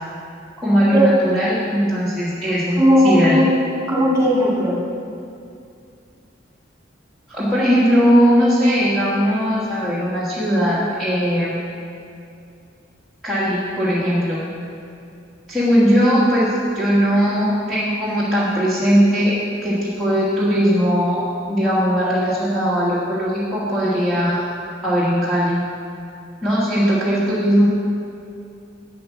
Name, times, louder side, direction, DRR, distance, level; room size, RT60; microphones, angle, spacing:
voice 1, 0.6-2.8 3.0-3.5 7.3-11.5 13.2-14.4 15.5-19.4 19.6-21.2 21.5-24.4 24.8-25.6 26.4-27.7, equal, ahead, -11 dB, 1.5 m, -18 dB
voice 2, 2.8-3.5 3.9-4.8, equal, 15° right, -5 dB, 2.3 m, -16 dB
8.2 x 7.7 x 6.0 m, 2.5 s
head